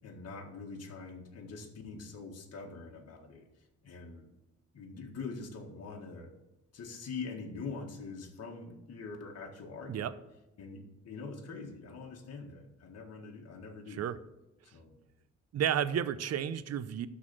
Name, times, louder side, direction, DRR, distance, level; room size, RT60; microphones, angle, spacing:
voice 1, 0.0-3.5 3.8-4.3 4.7-6.3 6.7-10.1 10.6-14.0 14.6-15.0, left 4 dB, 55° left, 1 dB, 1.8 m, -44 dB
voice 2, 15.5-17.1, right 9 dB, 55° right, 14 dB, 0.7 m, -31 dB
12.5 x 4.1 x 7.6 m, 0.95 s
cardioid pair, 90°, 30 cm